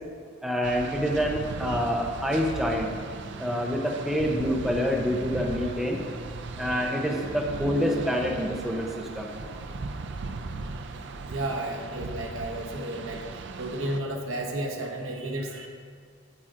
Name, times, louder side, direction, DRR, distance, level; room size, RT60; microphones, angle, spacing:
voice 1, 0.4-2.9 3.4-6.0 6.6-9.3, equal, ahead, -1 dB, 0.7 m, -27 dB
sound 1, 0.6-14.0, right 3 dB, 55° right, 0.4 m, -37 dB
voice 2, 11.2-13.2 13.6-15.7, right 1 dB, 75° right, 2 dB, 1.2 m, -32 dB
8.7 x 8.7 x 3.8 m, 2.2 s
head